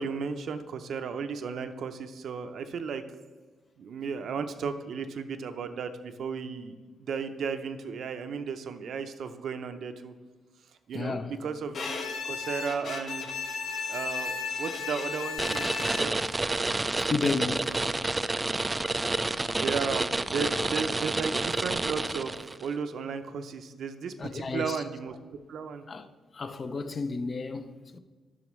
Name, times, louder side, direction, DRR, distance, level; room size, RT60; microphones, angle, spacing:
voice 1, 0.0-3.0 3.8-10.1 10.9-13.3 13.9-16.1 17.6-18.1 19.6-25.2 25.5-25.8, right 5 dB, 65° right, 0.6 m, -35 dB
voice 2, 10.9-11.4 17.0-17.8 24.2-24.8 25.9-26.1 26.3-28.0, left 4 dB, 35° left, 0.5 m, -32 dB
Bowed string instrument, 11.7-16.3, left 4 dB, 65° left, 1.0 m, -34 dB
sound 1, 15.4-22.6, right 2 dB, 20° right, 0.3 m, -29 dB
11.0 x 6.3 x 3.1 m
cardioid pair, 105°, 0 cm